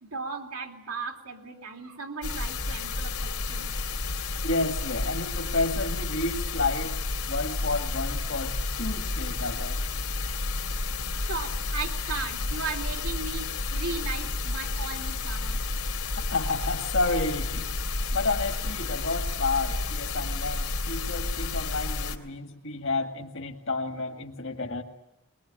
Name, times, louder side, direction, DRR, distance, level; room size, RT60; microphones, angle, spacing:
voice 1, 0.0-3.7 11.3-15.6, right 4 dB, 90° right, 2 dB, 3.0 m, -36 dB
sound 1, 2.2-22.2, left 3 dB, 80° left, 2.8 m, -31 dB
voice 2, 4.4-7.0 7.3-9.8 16.3-17.7 18.1-24.8, left 3 dB, 55° left, 3 dB, 2.0 m, -30 dB
22.5 x 21.0 x 9.9 m, 0.91 s
head